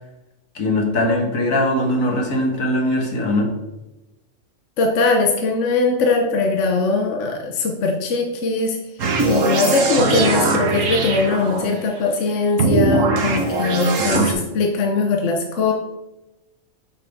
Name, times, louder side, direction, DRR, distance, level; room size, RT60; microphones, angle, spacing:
voice 1, 0.6-3.5 14.0-14.2, left 1 dB, 85° left, 1 dB, 1.7 m, -21 dB
voice 2, 4.8-8.8 9.3-15.7, left 3 dB, 65° left, 2 dB, 1.1 m, -20 dB
sound 1, 9.0-11.8 12.6-14.3, right 3 dB, 75° right, 1.3 m, -20 dB
7.4 x 5.4 x 3.4 m, 0.99 s
omnidirectional pair, 1.4 m